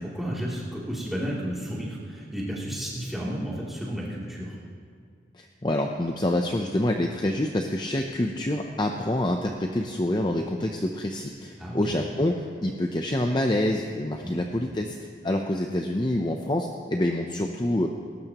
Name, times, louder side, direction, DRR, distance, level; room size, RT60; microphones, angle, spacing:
voice 1, 0.0-4.6 11.6-11.8 14.1-14.5, equal, ahead, -7 dB, 2.9 m, -32 dB
voice 2, 5.3-15.0 15.2-17.9, left 1 dB, 25° left, 3 dB, 0.6 m, -27 dB
19.0 x 18.5 x 3.0 m, 2.2 s
head